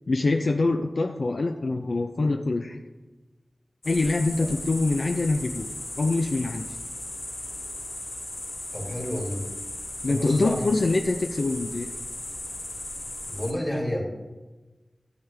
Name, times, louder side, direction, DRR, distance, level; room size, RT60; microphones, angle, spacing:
voice 1, 0.1-2.8 3.8-5.7 6.0-6.7 10.0-11.9, left 3 dB, 65° left, 4 dB, 0.5 m, -24 dB
sound 1, 3.8-13.5, left 1 dB, 85° left, 2.3 m, -37 dB
voice 2, 8.7-9.4 10.1-10.7 13.3-14.0, equal, 20° left, -1 dB, 2.5 m, -30 dB
13.0 x 7.4 x 3.4 m, 1.2 s
wide cardioid pair, 75°, 0 cm